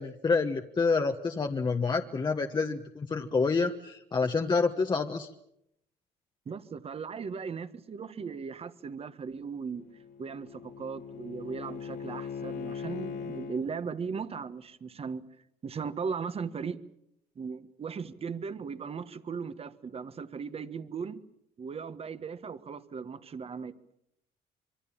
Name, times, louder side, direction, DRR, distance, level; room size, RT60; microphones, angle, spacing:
voice 1, 0.0-5.3, left 4 dB, 25° left, 1.3 m, -28 dB
voice 2, 6.4-9.8 10.2-15.2 15.6-16.8 17.3-21.2 21.6-23.8, right 5 dB, 35° right, 1.5 m, -37 dB
Bowed string instrument, 9.5-13.6, left 7 dB, 80° left, 3.1 m, -40 dB
26.0 x 24.0 x 7.3 m
cardioid pair, 110°, 17 cm